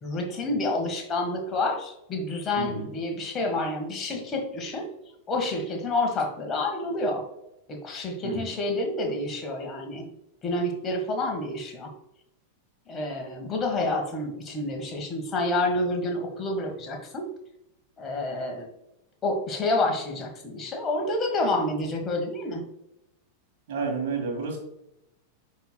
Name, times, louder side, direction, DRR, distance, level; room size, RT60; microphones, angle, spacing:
voice 1, 0.0-4.8 5.3-7.2 7.7-10.1 10.4-11.9 12.9-17.3 18.0-18.7 19.2-22.6, left 2 dB, 25° left, 2 dB, 1.5 m, -28 dB
voice 2, 2.6-2.9 8.2-8.5 23.7-24.6, right 4 dB, 55° right, 1 dB, 2.2 m, -30 dB
9.9 x 4.3 x 2.3 m, 0.83 s
figure-of-eight pair, 90°, 0 cm